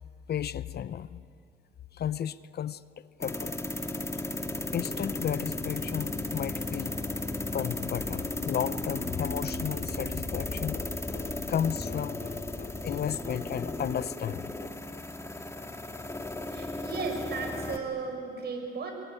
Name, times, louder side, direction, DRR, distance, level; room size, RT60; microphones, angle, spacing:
voice 1, 0.3-1.2 1.9-2.8 3.2-3.6 4.7-7.0 7.5-16.7 17.1-17.2, left 9 dB, 55° left, 17 dB, 0.7 m, -34 dB
sound 1, 3.2-17.8, left 2 dB, 15° left, 1.9 m, -35 dB
voice 2, 16.5-18.9, right 4 dB, 55° right, 3 dB, 6.6 m, -35 dB
25.0 x 22.0 x 9.9 m, 2.6 s
cardioid pair, 90°, 20 cm